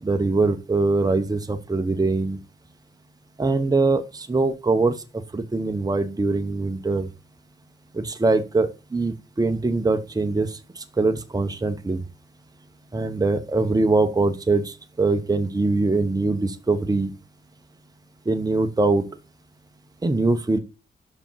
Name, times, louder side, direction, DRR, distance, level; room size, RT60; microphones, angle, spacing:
voice 1, 0.0-2.4 3.4-5.0 5.3-7.1 7.9-12.0 12.9-17.1 18.3-19.0 20.0-20.6, right 3 dB, 20° right, 1.0 m, -22 dB
6.0 x 4.9 x 5.7 m
cardioid pair, 70°, 20 cm